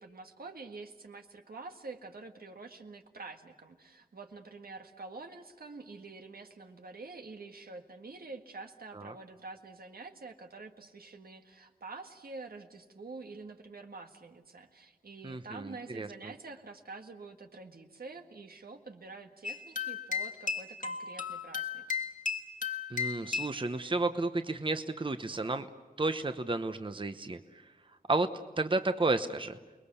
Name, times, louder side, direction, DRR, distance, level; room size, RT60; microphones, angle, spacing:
voice 1, 0.0-21.8, right 3 dB, 85° right, 5 dB, 1.8 m, -47 dB
voice 2, 15.2-16.1 22.9-25.7 26.0-27.4 28.1-28.3 28.6-29.6, right 2 dB, 35° right, 9 dB, 0.9 m, -32 dB
sound 1, 19.4-23.7, left 5 dB, 60° left, 1.5 m, -35 dB
29.5 x 21.0 x 7.0 m, 1.3 s
wide cardioid pair, 85°, 15 cm